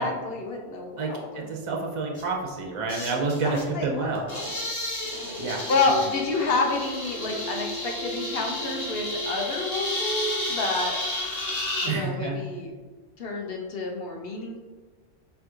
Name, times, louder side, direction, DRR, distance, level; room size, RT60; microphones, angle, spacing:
voice 1, 0.0-1.4 3.2-4.4 5.7-11.0 11.8-12.7 13.2-14.6, left 3 dB, 55° left, 0 dB, 0.9 m, -29 dB
voice 2, 1.0-4.2 5.4-5.7 11.8-12.4, right 3 dB, 45° right, 0 dB, 0.4 m, -29 dB
sound 1, 2.1-2.2 2.9-3.7 4.1-11.9, left 1 dB, 35° left, 1.0 m, -32 dB
4.7 x 2.8 x 3.7 m, 1.3 s
omnidirectional pair, 1.3 m